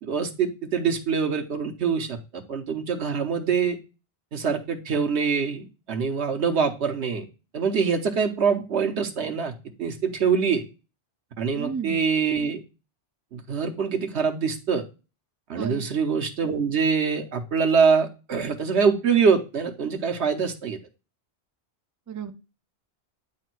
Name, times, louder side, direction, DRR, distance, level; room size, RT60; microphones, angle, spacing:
voice 1, 0.0-3.8 4.3-7.2 7.5-9.5 9.8-10.6 11.4-12.6 13.3-14.8 15.5-20.8, right 6 dB, 80° right, 4 dB, 1.3 m, -24 dB
voice 2, 11.5-12.0 15.6-15.8 22.1-22.3, right 6 dB, 30° right, 9 dB, 0.3 m, -33 dB
9.1 x 3.5 x 4.5 m, 0.31 s
omnidirectional pair, 1.1 m